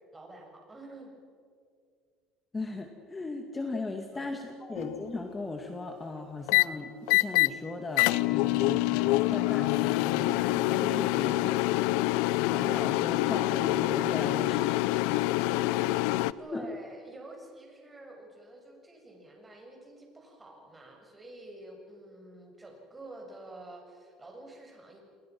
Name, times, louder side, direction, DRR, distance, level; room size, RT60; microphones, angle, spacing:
voice 1, 0.1-1.1 4.1-4.4 11.1-11.5 15.6-15.8 16.4-25.0, right 1 dB, 15° right, 1 dB, 7.2 m, -48 dB
voice 2, 2.5-11.4 12.5-14.8 16.5-16.7, left 3 dB, 20° left, 4 dB, 2.3 m, -37 dB
sound 1, 4.8-5.1 6.5-6.6 7.1-7.5 8.0-16.3, left 19 dB, 85° left, 0.6 m, -26 dB
29.0 x 23.0 x 6.2 m, 2.2 s
cardioid pair, 110°, 0 cm